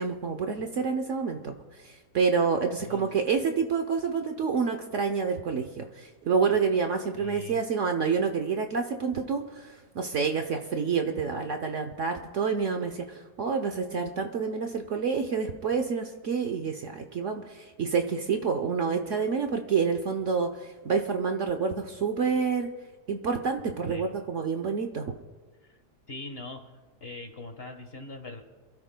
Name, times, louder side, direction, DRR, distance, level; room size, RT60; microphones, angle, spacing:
voice 1, 0.0-1.5 1.8-22.7 23.1-25.2, right 5 dB, 55° right, 5 dB, 1.0 m, -28 dB
voice 2, 7.2-7.6 23.9-24.1 25.7-25.8 26.1-26.6 27.0-28.4, left 2 dB, 40° left, 6 dB, 1.3 m, -41 dB
27.5 x 13.0 x 2.2 m, 1.3 s
omnidirectional pair, 1.8 m